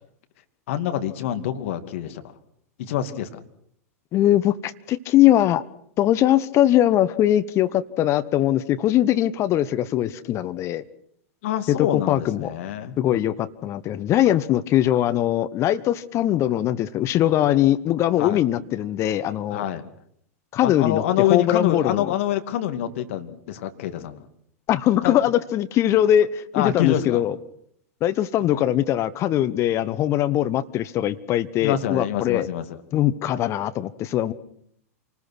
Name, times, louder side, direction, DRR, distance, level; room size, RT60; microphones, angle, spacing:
voice 1, 0.7-2.2 2.8-3.4 11.4-13.0 18.2-18.4 19.5-19.8 20.6-24.2 25.0-25.2 26.5-27.2 28.5-28.6 31.6-32.8, left 11 dB, 55° left, 8 dB, 2.5 m, -26 dB
voice 2, 4.1-5.6 6.0-10.8 11.7-12.5 13.0-19.6 20.5-21.0 21.3-22.1 24.7-27.3 28.0-32.5 32.9-34.3, left 12 dB, 35° left, 12 dB, 1.2 m, -21 dB
27.5 x 20.0 x 6.2 m, 0.69 s
figure-of-eight pair, 95°, 8 cm